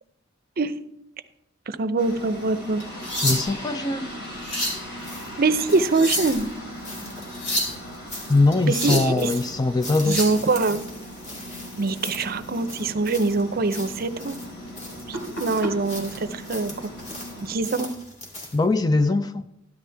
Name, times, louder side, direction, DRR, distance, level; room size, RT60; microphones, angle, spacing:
voice 1, 1.7-2.8 5.4-6.5 8.7-9.3 10.1-10.8 11.8-14.4 15.1-16.7 17.4-17.9, right 3 dB, 50° right, 0.6 m, -24 dB
sound 1, 2.0-17.6, equal, 55° left, 3.2 m, -39 dB
sound 2, 2.8-3.7 4.2-4.8 5.7-6.5 7.2-7.8 8.5-9.2 9.9-10.4 12.4-12.6 13.1-13.3 13.8-13.9 15.1-15.7 16.8-17.0, left 1 dB, 80° left, 4.0 m, -29 dB
voice 2, 3.2-4.1 8.3-10.2 18.5-19.4, left 3 dB, 20° left, 0.4 m, -21 dB
sound 3, 4.6-18.7, left 1 dB, 35° left, 2.2 m, -41 dB
13.5 x 11.0 x 3.4 m
head